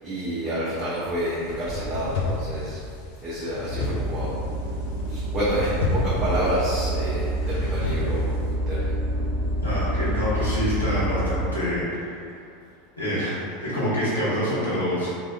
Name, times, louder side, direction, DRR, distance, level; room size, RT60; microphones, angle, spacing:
voice 1, 0.0-2.8 3.2-4.3 5.1-8.3 8.7-8.8, equal, 25° right, -11 dB, 0.7 m, -28 dB
sound 1, 1.2-8.5, left 3 dB, 60° left, 0.3 m, -32 dB
sound 2, 3.7-11.5, right 1 dB, 20° left, 1.2 m, -27 dB
voice 2, 9.6-12.4 13.0-15.1, equal, 85° left, -10 dB, 0.9 m, -26 dB
2.8 x 2.3 x 2.3 m, 2.4 s
figure-of-eight pair, 80°, 0 cm